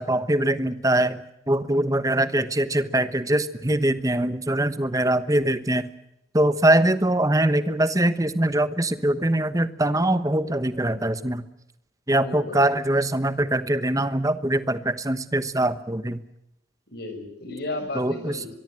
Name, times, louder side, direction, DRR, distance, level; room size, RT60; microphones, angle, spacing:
voice 1, 0.0-5.9 6.3-11.5 12.1-16.2 17.9-18.5, right 1 dB, 15° right, 13 dB, 1.1 m, -23 dB
voice 2, 12.2-12.6 16.9-18.5, left 2 dB, 55° left, 9 dB, 5.5 m, -34 dB
23.5 x 23.0 x 7.7 m, 0.84 s
head